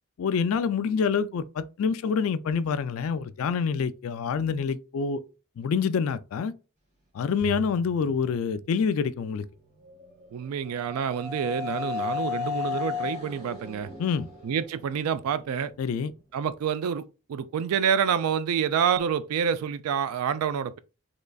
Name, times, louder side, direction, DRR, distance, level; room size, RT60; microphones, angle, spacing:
voice 1, 0.2-5.2 5.6-6.5 7.1-9.4 14.0-14.3 15.8-16.1, left 6 dB, 70° left, 0.3 m, -27 dB
Bowed string instrument, 7.4-9.8, right 6 dB, 55° right, 2.1 m, -42 dB
sound 1, 9.8-15.7, left 7 dB, 35° right, 1.3 m, -35 dB
voice 2, 10.3-13.9 14.4-15.7 16.3-20.8, right 7 dB, 80° right, 0.3 m, -27 dB
3.7 x 3.1 x 2.3 m
head